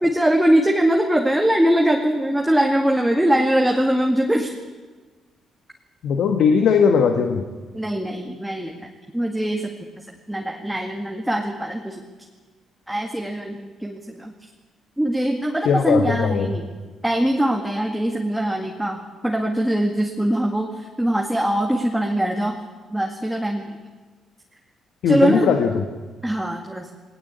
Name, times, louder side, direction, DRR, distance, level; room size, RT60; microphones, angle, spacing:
voice 1, 0.0-4.5 7.7-9.8 10.3-12.0 12.9-14.3 15.0-16.7 17.0-22.6 22.9-23.7 25.1-25.6 26.2-26.9, right 1 dB, 5° right, 1 dB, 1.9 m, -22 dB
voice 2, 6.0-7.4 15.6-16.5 25.0-25.8, left 6 dB, 75° left, 5 dB, 1.6 m, -19 dB
18.5 x 18.0 x 8.3 m, 1.3 s
cardioid pair, 90°, 0 cm